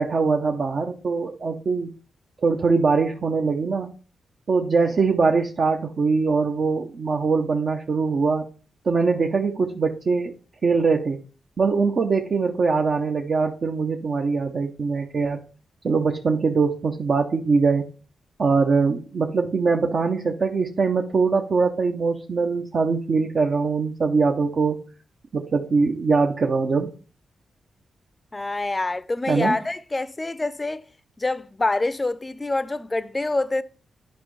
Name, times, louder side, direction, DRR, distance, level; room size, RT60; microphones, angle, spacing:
voice 1, 0.0-1.9 2.4-3.9 4.5-8.5 8.8-10.3 10.6-11.2 11.6-15.4 15.8-17.9 18.4-24.8 25.3-26.9 29.3-29.6, right 4 dB, 55° right, 0.7 m, -22 dB
voice 2, 28.3-30.8 31.2-33.6, left 2 dB, 25° left, 0.5 m, -26 dB
9.5 x 5.1 x 3.1 m
cardioid pair, 60°, 0 cm